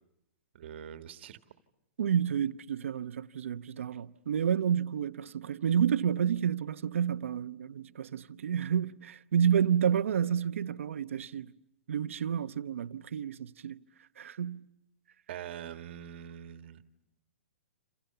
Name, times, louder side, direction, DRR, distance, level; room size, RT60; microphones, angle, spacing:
voice 1, 0.5-1.4 15.3-16.8, right 10 dB, 55° right, 1.6 m, -43 dB
voice 2, 2.0-11.5 11.9-13.8 14.2-14.6, right 8 dB, 80° right, 1.0 m, -30 dB
29.0 x 28.0 x 6.9 m
hypercardioid pair, 150°, 7 cm